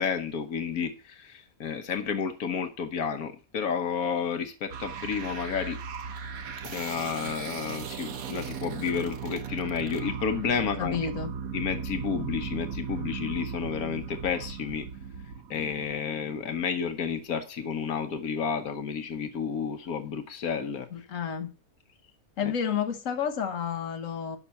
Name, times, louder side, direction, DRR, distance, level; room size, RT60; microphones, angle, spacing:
voice 1, 0.0-5.8 6.6-11.1 11.5-14.9 15.5-20.9 22.4-22.5, left 6 dB, 85° left, 1.5 m, -31 dB
sound 1, 4.7-17.0, right 6 dB, 75° right, 1.4 m, -37 dB
voice 2, 10.8-11.3 20.9-21.5 22.4-24.4, left 7 dB, 65° left, 1.6 m, -30 dB
12.0 x 5.9 x 5.6 m
omnidirectional pair, 1.5 m